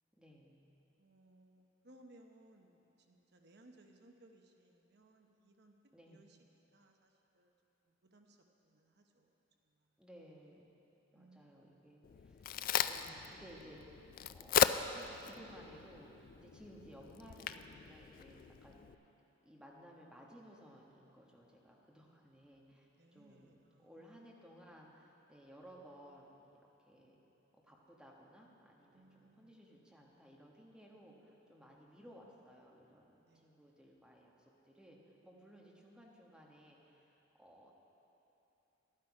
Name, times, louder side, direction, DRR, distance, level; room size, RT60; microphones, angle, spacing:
voice 1, 0.2-0.6 5.9-6.3 10.0-10.7 11.1-12.5 12.8-14.0 14.3-18.9 19.4-26.4 26.8-27.2 27.5-37.1 37.4-37.7, equal, 5° right, -2 dB, 1.3 m, -58 dB
voice 2, 1.0-5.7 6.1-6.4 6.7-7.5 8.1-8.4 8.6-9.3 9.6-9.9 11.1-11.8 22.9-24.1 28.9-29.6 33.2-33.6, right 1 dB, 60° right, 3 dB, 0.9 m, -64 dB
Crack, 12.0-18.9, left 8 dB, 45° left, 0.3 m, -37 dB
12.0 x 12.0 x 4.9 m, 3.0 s
head